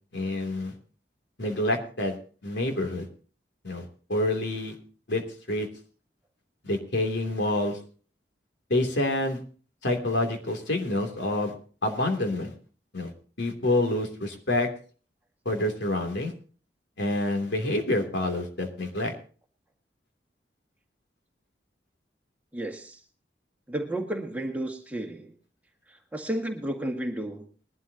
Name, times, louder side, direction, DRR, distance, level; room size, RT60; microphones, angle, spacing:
voice 1, 0.1-0.7 1.4-2.2 2.4-3.1 3.6-4.7 5.1-5.2 5.5-5.7 6.6-7.8 8.7-9.4 9.8-11.5 11.8-12.5 12.9-13.1 13.4-14.7 15.4-16.3 17.0-19.1, left 1 dB, 90° left, 4 dB, 3.0 m, -27 dB
voice 2, 22.5-23.0 23.7-25.3 26.1-27.5, right 1 dB, 10° right, 2 dB, 1.8 m, -32 dB
21.0 x 12.0 x 2.9 m, 0.40 s
head